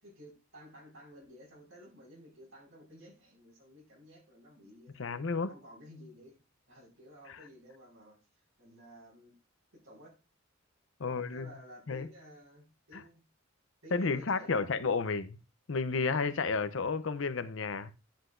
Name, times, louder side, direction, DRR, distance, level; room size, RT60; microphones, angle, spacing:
voice 1, 0.0-5.2 5.5-6.4 6.7-8.2 8.6-9.3 9.7-10.2 11.0-13.2 13.8-14.7, equal, 85° right, 5.1 m, -54 dB
voice 2, 5.0-5.5 11.0-11.5 11.9-12.1 12.9-13.0 13.9-15.4 15.7-17.9, left 4 dB, 70° left, 0.6 m, -31 dB
10.5 x 7.7 x 2.5 m
head